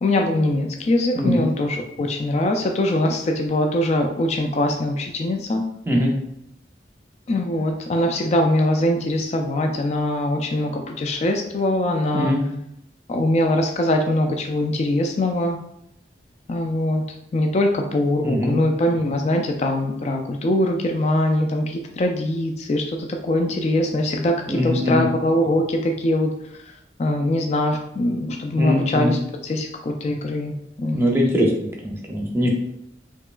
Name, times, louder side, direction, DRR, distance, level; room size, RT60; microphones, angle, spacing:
voice 1, 0.0-5.6 7.3-12.3 13.1-15.6 16.5-17.0 17.3-26.3 27.0-31.2, left 1 dB, 40° left, 3 dB, 0.3 m, -22 dB
voice 2, 1.1-1.5 5.9-6.1 12.1-12.4 18.2-18.6 24.5-25.1 28.6-29.2 30.9-32.5, left 1 dB, 15° right, 0 dB, 0.7 m, -21 dB
4.4 x 2.9 x 2.4 m, 0.79 s
head